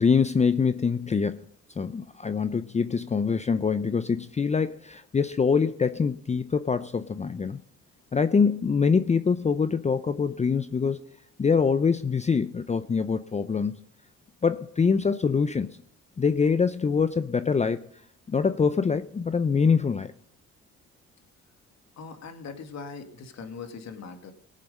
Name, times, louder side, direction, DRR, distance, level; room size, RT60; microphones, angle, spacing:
voice 1, 0.0-1.4 1.8-7.6 8.1-11.0 11.4-13.7 14.4-15.8 16.2-17.9 18.3-20.1, left 5 dB, 25° left, 12 dB, 0.6 m, -24 dB
voice 2, 22.0-24.3, left 5 dB, 60° left, 7 dB, 2.0 m, -40 dB
18.0 x 7.5 x 5.3 m, 0.66 s
cardioid pair, 90°, 30 cm